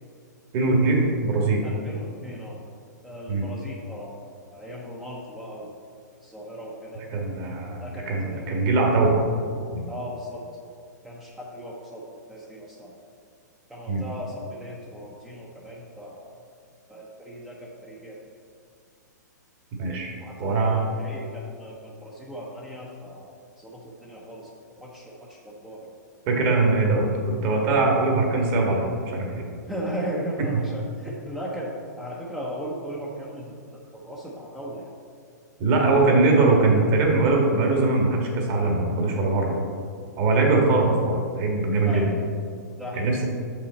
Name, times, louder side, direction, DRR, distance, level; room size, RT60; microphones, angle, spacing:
voice 1, 0.5-1.6 3.3-3.4 7.1-9.2 9.7-9.8 13.9-14.0 19.8-20.1 20.4-20.8 26.3-29.4 30.4-30.5 35.6-39.6 40.2-42.1 43.0-43.2, right 3 dB, 40° right, 0 dB, 1.7 m, -21 dB
voice 2, 1.6-2.6 3.0-4.2 4.5-5.7 6.2-7.3 7.8-8.5 9.9-10.4 11.0-12.0 12.3-12.9 13.7-16.3 16.9-18.2 20.2-23.3 23.6-24.5 24.8-25.9 29.7-34.9 41.8-42.1 42.8-43.1, equal, 5° right, -5 dB, 0.8 m, -37 dB
6.7 x 5.8 x 4.1 m, 2.3 s
hypercardioid pair, 130°, 10 cm